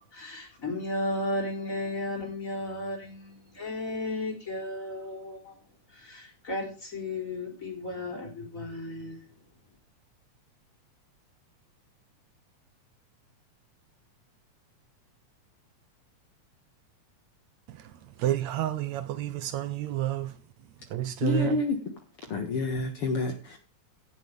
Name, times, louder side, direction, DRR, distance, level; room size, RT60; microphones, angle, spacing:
voice 1, 0.1-5.6 5.9-9.3, left 1 dB, 25° left, 4.4 m, -34 dB
voice 2, 18.2-20.3 20.9-21.6, right 13 dB, 75° right, 1.9 m, -29 dB
voice 3, 21.2-21.8 22.3-23.6, left 3 dB, 55° left, 2.2 m, -28 dB
16.0 x 7.7 x 3.4 m
omnidirectional pair, 3.4 m